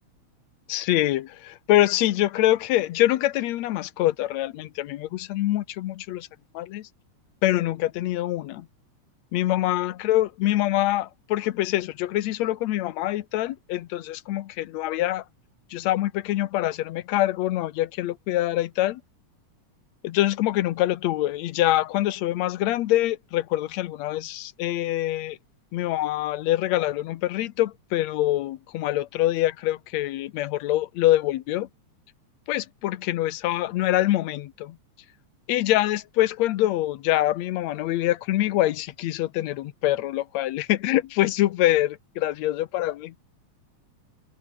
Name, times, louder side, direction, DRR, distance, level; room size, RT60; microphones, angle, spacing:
voice 1, 0.7-6.3 6.5-6.9 7.4-8.7 9.3-15.2 15.7-19.0 20.0-25.4 25.7-31.7 32.5-34.8 35.5-43.1, left 15 dB, 75° left, 2.0 m, -25 dB
omnidirectional pair, 3.3 m